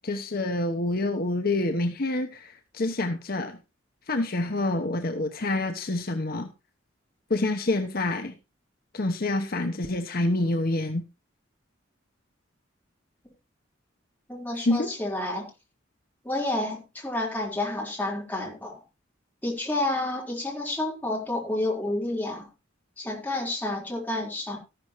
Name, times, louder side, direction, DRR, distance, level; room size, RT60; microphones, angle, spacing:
voice 1, 0.0-3.6 4.1-6.5 7.3-8.3 8.9-11.0 14.6-14.9, left 2 dB, 50° left, 5 dB, 1.0 m, -27 dB
voice 2, 14.3-15.5 16.2-18.8 19.4-22.5 23.0-24.6, left 2 dB, 10° left, -2 dB, 4.2 m, -30 dB
14.0 x 12.0 x 3.1 m, 0.28 s
head